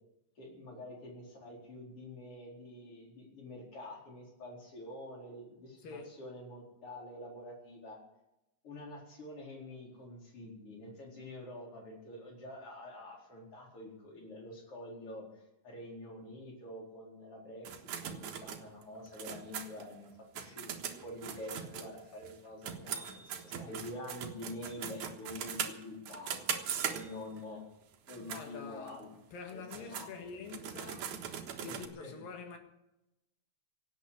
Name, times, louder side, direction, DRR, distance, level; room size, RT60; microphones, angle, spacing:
voice 1, 0.4-8.0 8.6-15.2 15.6-20.1 20.3-20.7 21.0-26.3 26.8-27.6 28.1-29.1 29.5-30.1 31.7-32.2, left 1 dB, 40° left, 5.3 m, -47 dB
sound 1, 17.7-22.3 22.6-27.4 27.9-28.5 28.9-29.0 29.5-31.9, right 8 dB, 65° right, 2.6 m, -40 dB
voice 2, 28.2-29.0 29.3-31.1 31.6-32.6, left 5 dB, 85° left, 3.6 m, -46 dB
17.5 x 8.7 x 8.4 m
omnidirectional pair, 3.9 m